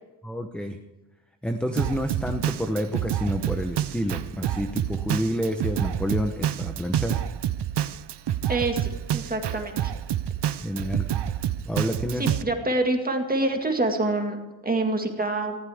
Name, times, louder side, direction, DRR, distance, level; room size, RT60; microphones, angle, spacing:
voice 1, 0.2-0.8 1.4-7.2 10.6-11.1 11.4-12.3, equal, ahead, 6 dB, 0.9 m, -29 dB
Drum kit, 1.8-12.4, right 10 dB, 60° right, 0.7 m, -28 dB
voice 2, 8.5-9.9 12.2-14.4 14.6-15.6, right 2 dB, 20° right, 3 dB, 2.0 m, -26 dB
19.0 x 15.0 x 3.6 m, 1.1 s
wide cardioid pair, 135°, 47 cm